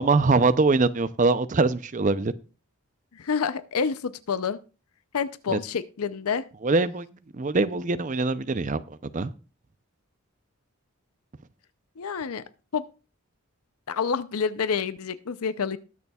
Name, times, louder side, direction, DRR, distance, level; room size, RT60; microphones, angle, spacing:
voice 1, 0.0-2.3 5.5-5.6 6.6-7.1 7.3-9.3, right 3 dB, 35° right, 13 dB, 0.5 m, -23 dB
voice 2, 3.1-4.6 5.1-6.4 12.0-12.4 12.7-12.8 13.9-15.8, left 6 dB, 80° left, 13 dB, 0.6 m, -28 dB
20.0 x 6.9 x 2.3 m, 0.34 s
head